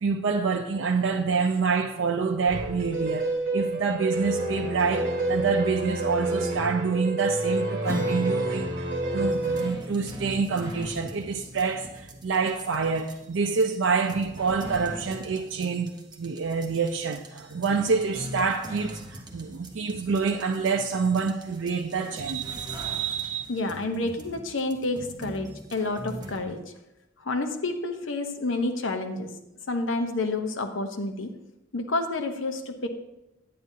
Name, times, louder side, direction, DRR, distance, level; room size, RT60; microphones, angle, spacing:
voice 1, 0.0-3.3 3.5-8.7 9.1-23.5, right 5 dB, 75° right, 0.5 m, -27 dB
sound 1, 2.5-9.7, right 2 dB, 55° right, 1.5 m, -28 dB
Acoustic guitar / Strum, 7.8-13.8, left 1 dB, 15° left, 1.9 m, -39 dB
sound 2, 9.3-26.5, equal, 20° right, 1.0 m, -42 dB
voice 2, 23.5-26.6 27.2-29.3 29.7-31.3 31.7-32.9, left 2 dB, 90° left, 0.9 m, -29 dB
9.5 x 9.4 x 2.8 m
head